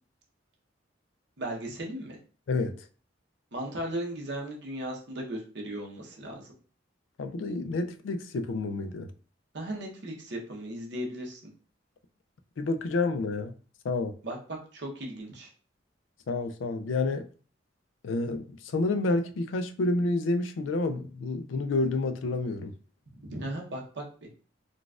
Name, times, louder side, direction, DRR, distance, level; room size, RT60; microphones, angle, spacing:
voice 1, 1.4-2.2 3.5-6.5 9.5-11.4 14.2-15.5 23.2-24.3, right 1 dB, 65° right, 0.9 m, -36 dB
voice 2, 2.5-2.8 7.2-9.1 12.6-13.5 13.8-14.1 16.3-17.3 18.0-22.7, left 3 dB, 85° left, 0.4 m, -29 dB
3.9 x 2.3 x 2.4 m
head